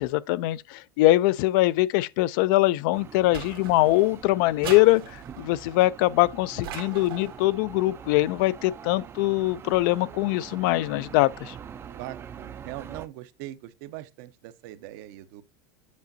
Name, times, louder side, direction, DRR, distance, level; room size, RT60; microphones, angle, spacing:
voice 1, 0.0-11.6, left 17 dB, 65° left, 0.4 m, -23 dB
sound 1, 2.9-13.1, right 8 dB, 20° right, 0.4 m, -44 dB
sound 2, 3.3-4.1 4.6-5.5 6.6-7.4, right 10 dB, 90° right, 1.6 m, -39 dB
voice 2, 11.9-15.4, right 15 dB, 60° right, 0.6 m, -41 dB
8.3 x 5.0 x 2.6 m
supercardioid pair, 135°, 12 cm